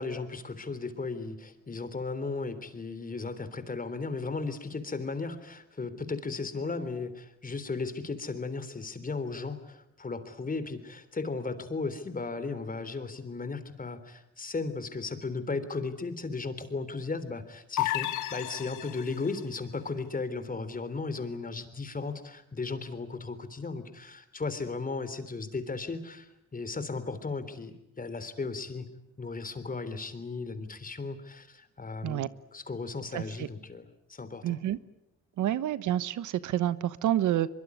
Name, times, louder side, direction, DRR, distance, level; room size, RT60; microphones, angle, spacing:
voice 1, 0.0-28.9 29.2-34.6 35.5-35.6, left 4 dB, 30° left, 11 dB, 3.5 m, -36 dB
sound 1, 17.8-19.4, left 16 dB, 90° left, 1.6 m, -32 dB
voice 2, 34.4-34.8 35.4-37.5, right 12 dB, 75° right, 16 dB, 1.1 m, -28 dB
23.5 x 23.0 x 9.6 m, 0.84 s
cardioid pair, 90°, 30 cm